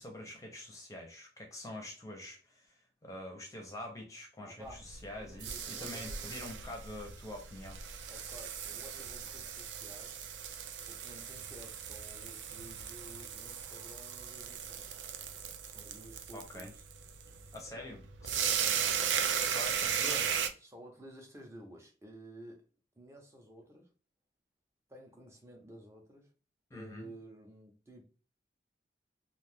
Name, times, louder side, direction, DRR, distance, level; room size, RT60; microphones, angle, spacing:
voice 1, 0.0-7.8 16.3-16.7 17.5-18.5 19.4-20.5 26.7-27.1, left 1 dB, 20° left, 1 dB, 0.7 m, -45 dB
voice 2, 4.4-4.9 5.2-6.4 8.1-10.2 10.8-14.9 15.6-16.8 17.3-17.5 17.7-17.9 18.3-19.3 20.6-22.7 23.0-23.9 24.9-26.3 26.7-28.0, right 1 dB, 15° right, 1 dB, 0.7 m, -53 dB
sound 1, 4.6-20.5, right 8 dB, 85° right, 0.4 m, -37 dB
2.5 x 2.4 x 3.4 m, 0.37 s
head